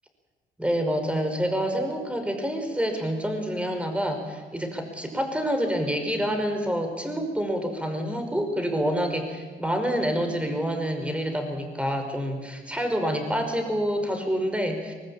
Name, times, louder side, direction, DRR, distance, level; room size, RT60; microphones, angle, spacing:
voice 1, 0.6-14.9, equal, 5° right, 5 dB, 5.2 m, -27 dB
24.0 x 19.5 x 8.8 m, 1.4 s
cardioid pair, 90°, 20 cm